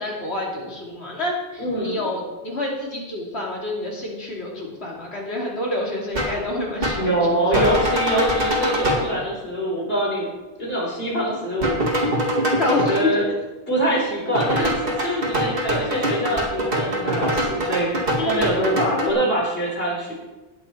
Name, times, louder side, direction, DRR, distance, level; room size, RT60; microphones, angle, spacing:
voice 1, 0.0-7.1 7.5-7.7 12.6-13.2 18.2-19.1, left 2 dB, 85° left, -2 dB, 3.2 m, -28 dB
voice 2, 1.6-2.1 7.0-10.3 10.6-12.0 12.7-13.3 13.7-20.1, right 1 dB, 65° left, -4 dB, 4.6 m, -24 dB
sound 1, 6.1-6.4 6.8-7.1 7.5-9.1 11.6-13.0 14.3-19.1, equal, 60° right, 2.4 m, -23 dB
18.5 x 7.3 x 4.6 m, 1.1 s
omnidirectional pair, 1.1 m